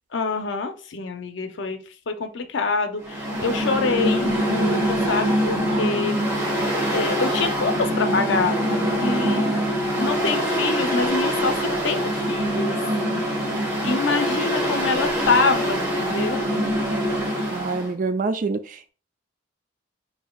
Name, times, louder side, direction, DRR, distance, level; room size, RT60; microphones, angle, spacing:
voice 1, 0.1-1.8 2.1-6.2 6.9-8.6 9.0-9.5 10.0-12.7 13.8-16.5, left 4 dB, 65° left, 7 dB, 0.5 m, -25 dB
Mechanical fan, 3.0-17.9, equal, 15° right, 1.2 m, -24 dB
voice 2, 17.5-18.6, right 4 dB, 40° right, 10 dB, 0.3 m, -26 dB
6.2 x 2.7 x 2.3 m, 0.39 s
head